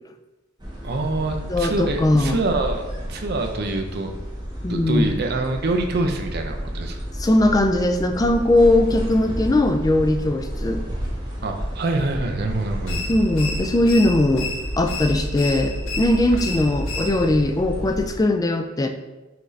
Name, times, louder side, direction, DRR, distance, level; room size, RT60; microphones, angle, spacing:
sound 1, 0.6-18.2, equal, 20° right, 0.8 m, -31 dB
voice 1, 0.8-2.8 3.1-4.1 4.7-7.0 11.4-13.0, right 2 dB, 50° right, 4 dB, 0.5 m, -25 dB
voice 2, 1.5-2.4 4.6-5.1 7.2-10.8 13.1-18.9, left 1 dB, 20° left, 5 dB, 0.3 m, -20 dB
sound 2, 12.9-17.5, left 3 dB, 90° left, 0.7 m, -33 dB
5.7 x 2.7 x 3.2 m, 1.1 s
head